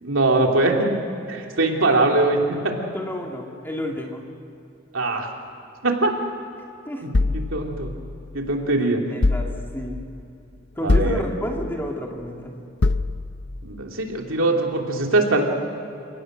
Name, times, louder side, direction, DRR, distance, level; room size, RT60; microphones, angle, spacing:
voice 1, 0.0-0.9 1.3-2.7 4.9-5.3 5.8-6.1 7.3-7.9 8.3-9.1 10.8-11.2 13.6-15.4, right 2 dB, 90° right, 1 dB, 3.0 m, -21 dB
voice 2, 2.9-4.2 6.9-7.1 9.1-10.0 10.8-12.5, equal, 10° left, 1 dB, 2.3 m, -30 dB
sound 1, 7.1-8.5 9.2-10.1 10.9-11.8 12.8-13.6, left 2 dB, 60° left, 0.6 m, -24 dB
29.0 x 18.0 x 6.4 m, 2.8 s
head